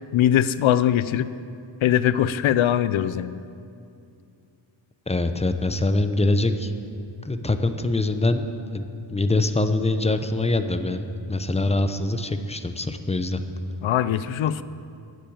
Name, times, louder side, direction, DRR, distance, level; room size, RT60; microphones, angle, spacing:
voice 1, 0.1-1.3 1.8-3.4 13.8-14.6, left 11 dB, 90° left, 15 dB, 0.5 m, -21 dB
voice 2, 5.1-6.7 7.2-8.5 8.7-13.4, left 2 dB, 15° left, 8 dB, 0.6 m, -24 dB
12.0 x 7.5 x 8.7 m, 2.5 s
wide cardioid pair, 105°, 46 cm